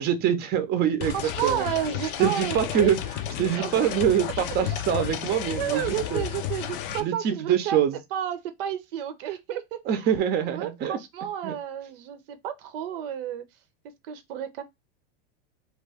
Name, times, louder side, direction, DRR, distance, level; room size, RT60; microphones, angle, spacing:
voice 1, 0.0-1.2 1.4-1.7 2.2-3.0 3.4-6.2 7.0-8.0 9.9-11.0 11.4-11.5, right 9 dB, 35° right, 0.6 m, -24 dB
sound 1, 1.0-7.0, left 10 dB, 65° left, 0.5 m, -32 dB
voice 2, 1.1-2.9 3.6-3.8 5.6-7.8 8.1-9.8 10.4-13.4 14.1-14.6, right 10 dB, 75° right, 0.6 m, -31 dB
2.4 x 2.3 x 3.3 m
supercardioid pair, 115°, 29 cm